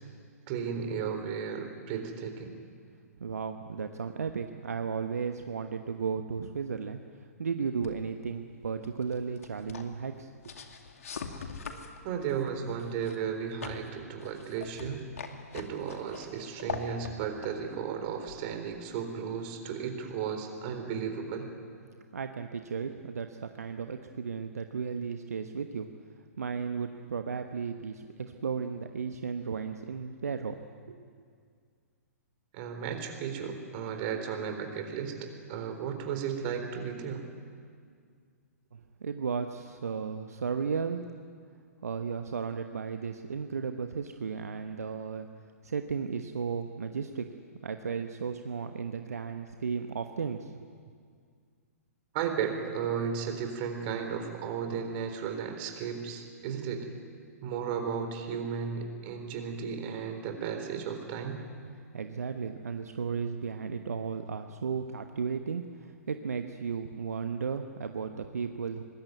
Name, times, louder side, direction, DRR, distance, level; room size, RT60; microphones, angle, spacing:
voice 1, 0.5-2.6 12.0-15.1 15.5-21.5 32.5-37.2 52.1-56.9 57.4-61.4, right 7 dB, 40° right, 6 dB, 3.9 m, -34 dB
voice 2, 3.2-10.5 22.1-25.9 26.4-30.6 30.9-31.1 38.7-41.1 41.8-45.3 45.6-47.3 47.6-50.7 61.6-68.8, right 6 dB, 70° right, 7 dB, 1.1 m, -35 dB
sound 1, 7.8-18.9, left 5 dB, 65° left, 2.4 m, -44 dB
25.0 x 20.5 x 9.5 m, 2.1 s
figure-of-eight pair, 115°, 9 cm